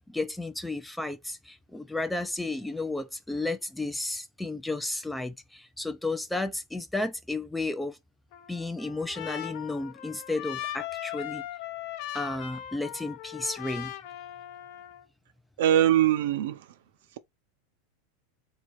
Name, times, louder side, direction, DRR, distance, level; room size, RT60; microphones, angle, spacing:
voice 1, 0.1-8.0 8.5-11.4 12.1-13.9, left 2 dB, 5° left, 0.3 m, -33 dB
Trumpet, 8.3-15.0, left 12 dB, 50° left, 0.7 m, -39 dB
voice 2, 15.6-16.7, right 11 dB, 70° right, 0.6 m, -22 dB
3.9 x 2.8 x 4.6 m
supercardioid pair, 155°, 0 cm